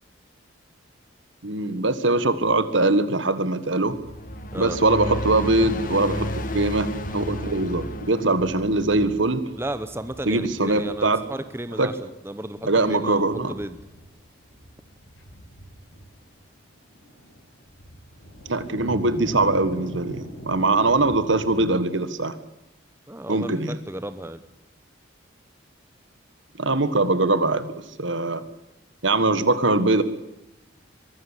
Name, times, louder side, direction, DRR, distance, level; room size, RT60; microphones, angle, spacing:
voice 1, 1.4-4.0 4.6-9.4 10.2-11.2 11.8-11.9 12.6-13.5 18.5-22.3 23.3-23.8 26.6-27.7 28.0-28.4 29.0-30.0, right 2 dB, 75° right, 13 dB, 1.7 m, -22 dB
sound 1, 3.9-10.5, left 1 dB, 45° left, 1.9 m, -32 dB
sound 2, 4.0-6.1 6.4-6.6 6.9-21.7, equal, 90° left, 7.2 m, -42 dB
voice 2, 9.6-13.8 23.1-24.4, right 1 dB, 10° right, 11 dB, 0.9 m, -34 dB
23.0 x 13.0 x 9.9 m, 0.93 s
head